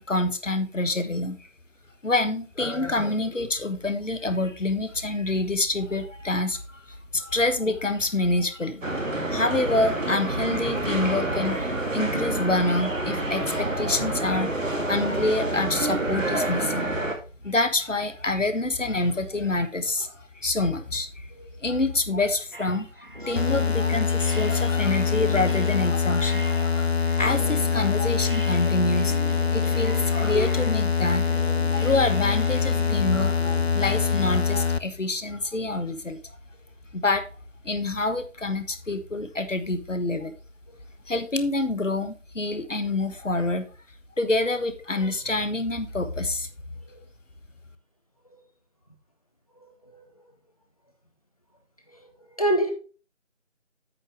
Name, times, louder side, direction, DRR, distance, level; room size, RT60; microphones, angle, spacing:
voice 1, 0.0-1.4 2.0-14.5 14.8-17.1 17.4-21.3 21.6-29.2 29.5-36.2 36.9-37.3 37.6-40.3 41.1-43.7 44.2-46.5, left 2 dB, 75° left, 1.4 m, -27 dB
sound 1, 8.8-17.1, right 1 dB, 85° right, 2.2 m, -28 dB
sound 2, 22.5-33.6, right 2 dB, 45° right, 0.8 m, -41 dB
sound 3, 23.4-34.8, left 6 dB, 55° left, 0.5 m, -24 dB
voice 2, 49.6-50.0 52.0-52.1 52.4-52.7, right 1 dB, 30° left, 1.2 m, -27 dB
8.5 x 6.6 x 3.5 m
figure-of-eight pair, 165°, 38 cm